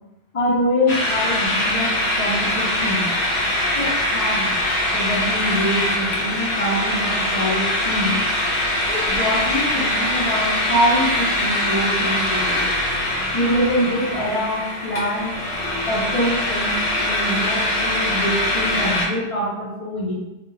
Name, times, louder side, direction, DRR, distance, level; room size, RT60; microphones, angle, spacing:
voice 1, 0.3-3.1 3.7-4.5 4.9-8.2 8.9-12.6 13.3-15.4 15.9-20.1, equal, 45° left, -7 dB, 0.5 m, -24 dB
sound 1, 0.9-19.1, left 1 dB, 80° left, 0.8 m, -22 dB
2.2 x 2.2 x 3.1 m, 0.96 s
omnidirectional pair, 1.1 m